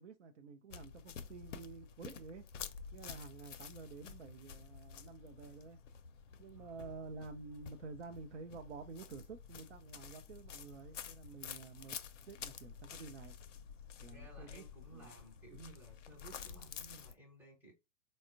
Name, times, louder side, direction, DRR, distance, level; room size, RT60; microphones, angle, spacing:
voice 1, 0.0-2.5 2.9-5.8 6.4-12.0 12.3-13.4 14.0-14.6 14.9-15.1 15.5-15.6, right 4 dB, 50° right, 0.6 m, -50 dB
sound 1, 0.7-17.1, left 7 dB, 55° left, 0.5 m, -50 dB
voice 2, 6.6-7.0 14.0-17.7, right 2 dB, 5° right, 0.8 m, -57 dB
4.1 x 2.1 x 2.4 m
figure-of-eight pair, 115°, 44 cm